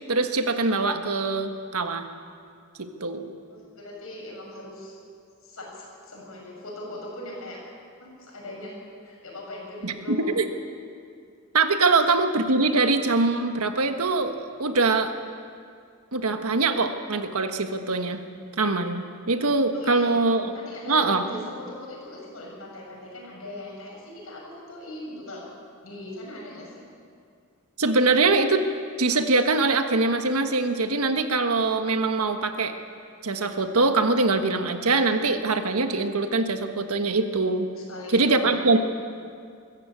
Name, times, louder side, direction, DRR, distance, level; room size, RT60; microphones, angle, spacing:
voice 1, 0.1-2.1 2.8-3.3 9.8-10.5 11.5-15.1 16.1-18.2 18.6-20.5 20.9-21.2 27.8-28.7 29.0-32.7 33.2-37.7 38.1-38.8, right 3 dB, 80° right, 7 dB, 1.4 m, -23 dB
voice 2, 3.5-5.0 5.4-7.6 8.0-8.7 9.0-10.3 19.7-20.1 20.5-25.4 25.8-26.8 37.8-38.7, left 1 dB, 70° left, -2 dB, 7.0 m, -39 dB
22.0 x 14.0 x 8.4 m, 2.3 s
head